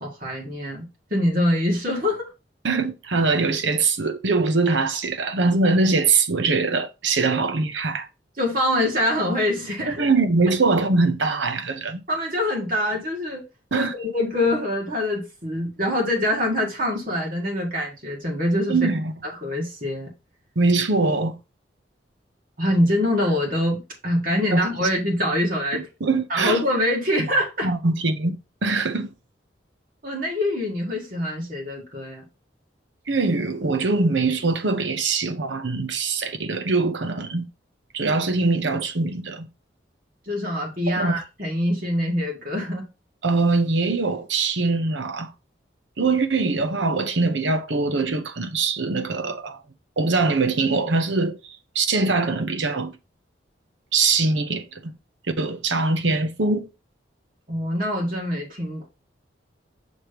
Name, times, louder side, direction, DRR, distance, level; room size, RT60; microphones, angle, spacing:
voice 1, 0.0-2.3 8.4-10.1 12.1-13.4 13.7-18.8 19.4-20.1 22.6-25.9 26.3-27.7 30.0-32.2 40.3-42.9 57.5-58.9, left 1 dB, 45° right, 1.7 m, -24 dB
voice 2, 2.6-8.1 10.0-12.0 13.7-13.9 18.7-19.1 20.6-21.3 24.5-24.6 25.7-26.6 27.6-28.4 28.6-29.1 33.1-37.5 37.9-39.5 40.9-41.2 43.2-45.3 46.0-49.6 50.0-51.4 51.7-53.0 53.9-54.9 55.4-56.7, right 3 dB, 80° right, 0.9 m, -22 dB
6.3 x 3.1 x 5.1 m
head